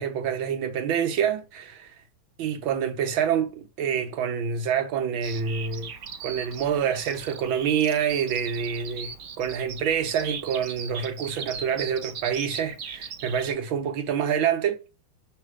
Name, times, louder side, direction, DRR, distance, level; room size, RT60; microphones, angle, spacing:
voice 1, 0.0-1.9 2.4-5.9 6.2-14.8, right 8 dB, 75° right, 1.7 m, -27 dB
Bird vocalization bird call bird song, 5.2-13.5, right 6 dB, 55° right, 1.1 m, -39 dB
6.5 x 3.3 x 4.7 m
omnidirectional pair, 2.2 m